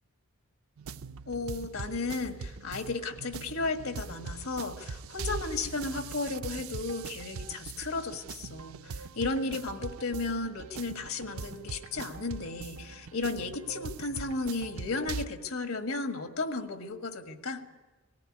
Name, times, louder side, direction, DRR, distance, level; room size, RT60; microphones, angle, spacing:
sound 1, 0.8-15.3, right 4 dB, 85° right, 0.5 m, -42 dB
voice 1, 1.3-17.6, left 3 dB, 85° left, 6 dB, 1.7 m, -34 dB
18.5 x 15.5 x 9.9 m, 1.3 s
head